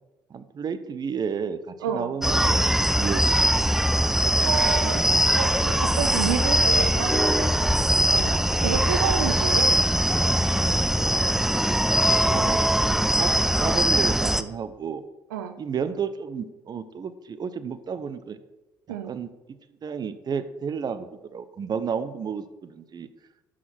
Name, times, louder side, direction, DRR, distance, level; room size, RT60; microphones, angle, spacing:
voice 1, 0.3-3.5 8.6-8.8 12.2-12.7 13.2-13.3 13.6-15.0 15.6-18.4 18.9-19.3 19.8-23.1, right 6 dB, 40° right, 12 dB, 0.7 m, -32 dB
voice 2, 1.8-2.1 4.4-5.1 5.4-7.5 7.9-9.7 15.3-15.6 18.9-19.1, right 8 dB, 90° right, 9 dB, 0.5 m, -30 dB
sound 1, 2.2-14.4, equal, 5° right, 0.5 m, -21 dB
7.4 x 5.9 x 5.9 m, 1.1 s
hypercardioid pair, 60°, 10 cm